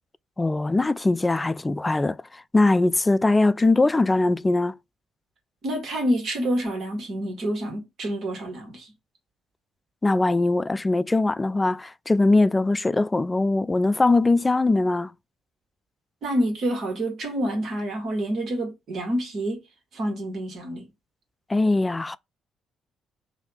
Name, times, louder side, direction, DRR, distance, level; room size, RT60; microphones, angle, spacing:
voice 1, 0.4-4.7 10.0-15.1 21.5-22.2, left 2 dB, 20° left, 0.3 m, -21 dB
voice 2, 5.6-8.9 16.2-19.6 19.9-20.9, right 1 dB, 60° right, 1.7 m, -27 dB
3.3 x 2.8 x 4.2 m
hypercardioid pair, 45°, 0 cm